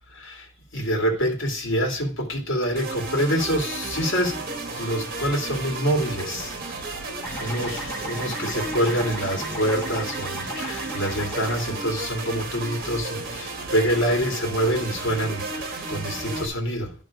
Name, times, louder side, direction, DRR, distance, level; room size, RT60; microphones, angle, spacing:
voice 1, 0.1-4.4 4.8-6.5 7.1-16.9, equal, 70° left, 2.3 m, -26 dB
sound 1, 2.8-16.5, right 3 dB, 45° right, 1.3 m, -33 dB
sound 2, 7.2-11.6, equal, 10° left, 2.1 m, -36 dB
11.5 x 3.8 x 5.0 m
head